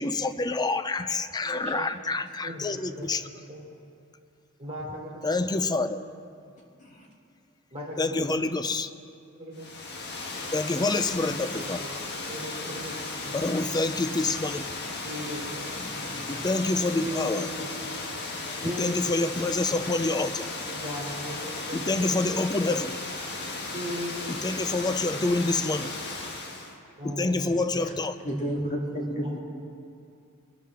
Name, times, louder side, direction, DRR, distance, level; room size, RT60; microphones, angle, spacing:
voice 1, 0.0-3.2 5.2-6.0 8.0-9.0 10.5-11.8 13.3-14.7 16.3-17.5 18.3-20.5 21.7-22.9 24.3-25.9 27.0-28.2, left 3 dB, 20° left, 11 dB, 0.4 m, -27 dB
voice 2, 1.4-1.9 2.4-3.1 3.5-3.7 4.6-5.9 7.7-8.5 9.3-9.7 11.5-11.7 12.0-13.7 15.0-15.7 17.0-17.7 18.6-19.1 20.6-22.4 23.7-24.4 27.0-27.6 29.2-29.4, equal, 30° right, -4 dB, 3.2 m, -38 dB
Water, 9.5-26.8, left 3 dB, 50° left, 1.4 m, -35 dB
voice 3, 15.7-16.4 27.8-27.9 28.2-29.4, equal, 35° left, -1 dB, 2.0 m, -32 dB
21.5 x 11.5 x 3.7 m, 2.4 s
head